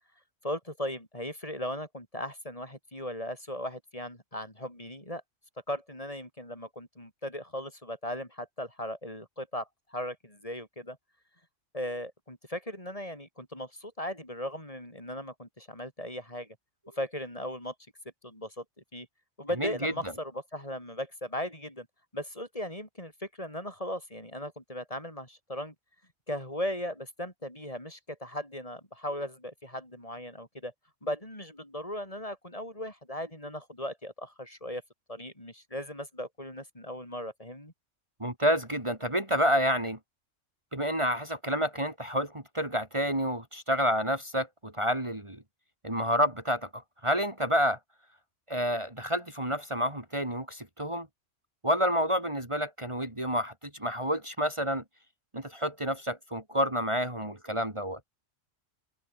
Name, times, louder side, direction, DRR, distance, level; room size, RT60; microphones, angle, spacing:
voice 1, 0.4-5.2 5.7-11.0 11.7-16.5 16.9-17.7 18.2-18.6 18.9-19.1 19.4-21.9 22.1-25.7 26.3-30.7 31.0-34.8 35.1-37.7, left 1 dB, 25° left, 6.4 m, -37 dB
voice 2, 19.6-19.9 38.2-40.0 40.7-45.4 45.8-47.8 48.5-51.1 51.6-53.5 53.8-54.8 55.3-58.0, equal, 25° right, 3.4 m, -29 dB
omnidirectional pair, 1.3 m